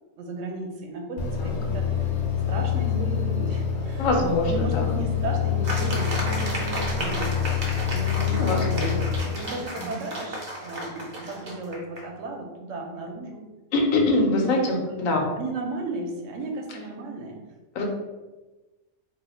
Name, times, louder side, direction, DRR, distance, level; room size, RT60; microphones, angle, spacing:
voice 1, 0.2-2.1 2.5-7.6 7.9-13.4 14.1-14.5 14.9-15.0 15.4-17.4, right 2 dB, 70° right, 2 dB, 0.9 m, -35 dB
sound 1, 1.2-9.2, left 8 dB, 65° left, 0.8 m, -26 dB
voice 2, 4.0-4.9 8.3-8.9 9.2-9.4 9.8-10.0 13.7-15.2 17.7-17.8, left 2 dB, 85° left, 0 dB, 1.1 m, -24 dB
sound 2, 5.6-12.1, right 1 dB, 45° right, 0.6 m, -34 dB
2.7 x 2.3 x 4.1 m, 1.1 s
omnidirectional pair, 1.4 m